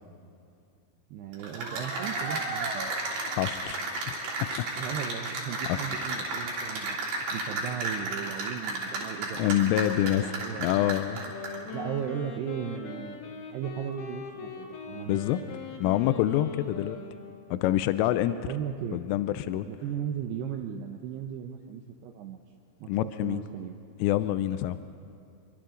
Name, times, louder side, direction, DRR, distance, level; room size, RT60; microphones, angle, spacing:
voice 1, 1.1-2.9 4.8-7.0 7.3-11.0 11.2-11.3 11.7-13.2 13.5-15.2 18.3-19.0 19.7-22.4 22.8-23.8, right 9 dB, 80° right, 4 dB, 2.5 m, -36 dB
Cheering / Applause, 1.3-11.7, right 2 dB, 60° right, 5.0 m, -33 dB
voice 2, 3.2-3.8 5.7-5.8 9.4-10.2 10.6-11.2 15.1-15.4 15.8-17.0 17.5-18.4 18.9-19.7 22.9-23.4 24.0-24.8, left 13 dB, 85° left, 12 dB, 3.1 m, -26 dB
Wind instrument woodwind instrument, 11.1-17.7, left 4 dB, 60° left, 3.4 m, -41 dB
30.0 x 23.5 x 3.9 m, 2.4 s
omnidirectional pair, 5.7 m